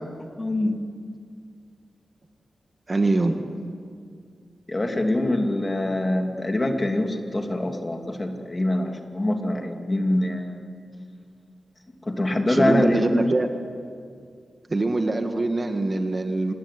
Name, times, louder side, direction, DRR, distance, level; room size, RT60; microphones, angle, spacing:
voice 1, 0.4-0.8 4.7-10.7 12.0-13.2, left 1 dB, 25° left, 3 dB, 2.8 m, -24 dB
voice 2, 2.9-3.5 12.5-13.5 14.7-16.5, right 2 dB, 30° right, 5 dB, 1.8 m, -23 dB
27.0 x 20.0 x 9.9 m, 2.2 s
wide cardioid pair, 115°, 0 cm